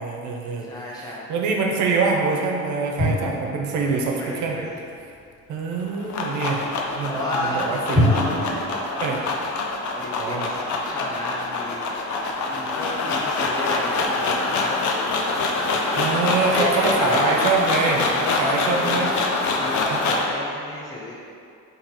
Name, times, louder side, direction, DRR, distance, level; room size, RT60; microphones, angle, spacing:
voice 1, 0.0-4.6 5.5-6.6 6.9-8.1 9.0-9.2 10.2-10.5 15.9-19.1 19.9-20.0, right 4 dB, 80° right, 1 dB, 0.5 m, -25 dB
voice 2, 0.7-1.3 3.8-4.8 7.1-9.3 9.9-12.1 12.4-15.2 16.4-17.3 18.5-19.1 19.4-21.2, left 1 dB, 15° left, -5 dB, 0.6 m, -32 dB
sound 1, 3.0-4.6 7.9-8.5, left 1 dB, 15° right, 1.4 m, -24 dB
sound 2, 5.7-20.3, left 3 dB, 70° left, 0.5 m, -25 dB
3.7 x 2.7 x 2.8 m, 2.4 s
cardioid pair, 90°, 30 cm